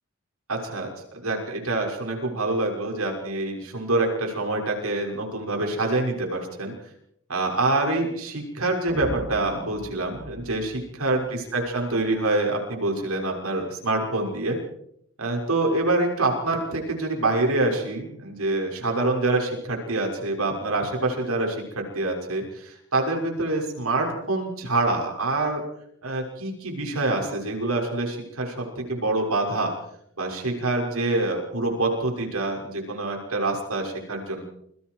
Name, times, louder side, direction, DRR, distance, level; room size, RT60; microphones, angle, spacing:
voice 1, 0.5-6.7 7.3-14.6 15.2-25.6 26.0-29.7 30.2-34.4, right 2 dB, 85° right, 2 dB, 6.1 m, -26 dB
sound 1, 8.9-12.0, equal, 30° right, 6.6 m, -39 dB
28.5 x 23.0 x 4.8 m, 0.72 s
head